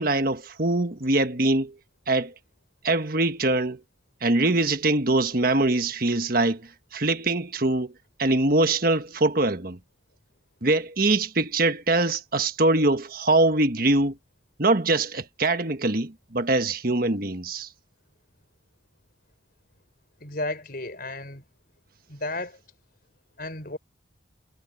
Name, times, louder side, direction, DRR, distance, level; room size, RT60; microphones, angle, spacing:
voice 1, 0.0-1.7 2.1-2.3 2.8-3.8 4.2-7.9 8.2-9.8 10.6-14.2 14.6-17.7, right 2 dB, 45° right, 1.4 m, -23 dB
voice 2, 20.2-21.4 22.1-22.6 23.4-23.8, left 2 dB, 50° left, 5.2 m, -33 dB
head